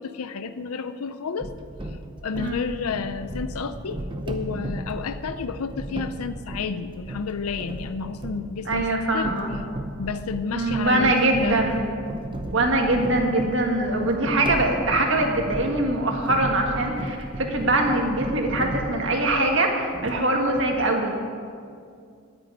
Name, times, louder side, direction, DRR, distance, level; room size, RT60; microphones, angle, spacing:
voice 1, 0.0-1.5 1.9-9.3 10.0-11.6, left 5 dB, 80° left, 11 dB, 0.5 m, -31 dB
sound 1, 1.4-19.6 19.9-20.8, right 1 dB, 20° right, 0.7 m, -35 dB
voice 2, 8.7-9.5 10.5-11.9 12.5-21.2, right 2 dB, 55° right, 2 dB, 1.8 m, -23 dB
9.5 x 8.9 x 9.5 m, 2.3 s
head